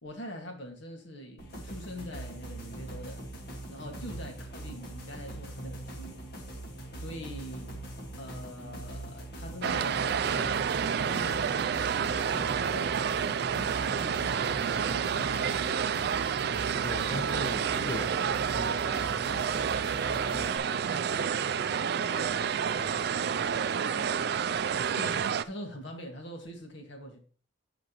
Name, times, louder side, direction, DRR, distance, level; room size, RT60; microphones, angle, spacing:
voice 1, 0.0-3.2 3.7-6.2 6.9-7.7 8.2-10.6 11.0-13.0 13.6-16.3 20.3-20.5 25.0-27.2, equal, 70° left, 1.9 m, -43 dB
sound 1, 1.4-20.6, right 1 dB, 55° left, 1.7 m, -42 dB
sound 2, 9.6-25.4, right 7 dB, 55° right, 0.3 m, -29 dB
voice 2, 16.8-24.4, left 1 dB, 35° left, 0.8 m, -43 dB
11.5 x 5.1 x 3.0 m
head